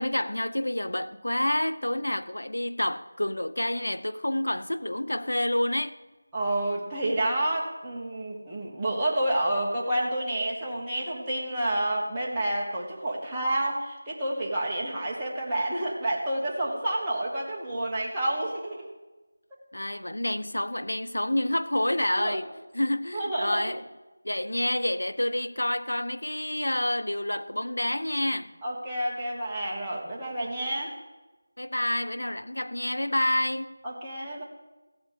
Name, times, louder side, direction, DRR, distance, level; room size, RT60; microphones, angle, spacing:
voice 1, 0.0-6.0 19.7-22.5 22.7-23.8 24.2-28.6 31.6-33.8, left 1 dB, 90° left, 0.7 m, -28 dB
voice 2, 6.3-18.9 22.1-22.4 23.1-23.7 28.6-31.0 33.8-34.4, right 1 dB, 10° right, 1.3 m, -29 dB
15.0 x 5.2 x 8.1 m
figure-of-eight pair, 175°, 0 cm